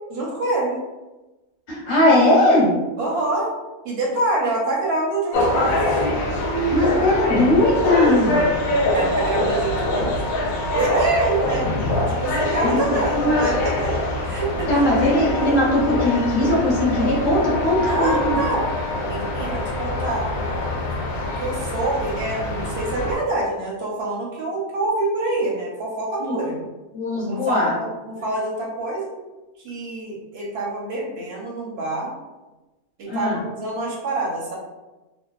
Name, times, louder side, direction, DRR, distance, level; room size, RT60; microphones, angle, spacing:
voice 1, 0.1-0.8 3.0-3.5 3.8-6.1 8.9-10.1 10.7-11.7 12.1-13.9 14.2-14.7 17.7-18.8 19.1-20.3 21.2-26.6 27.3-29.1 29.6-32.1 33.0-34.5, right 2 dB, 60° right, -4 dB, 0.7 m, -26 dB
voice 2, 1.7-2.7 6.7-8.5 12.8-13.3 14.7-18.3 26.2-26.4 26.9-27.7 33.1-33.4, left 1 dB, 40° left, -7 dB, 1.0 m, -19 dB
sound 1, 5.3-23.1, left 1 dB, 70° left, 0.9 m, -24 dB
2.7 x 2.1 x 2.3 m, 1.1 s
omnidirectional pair, 1.6 m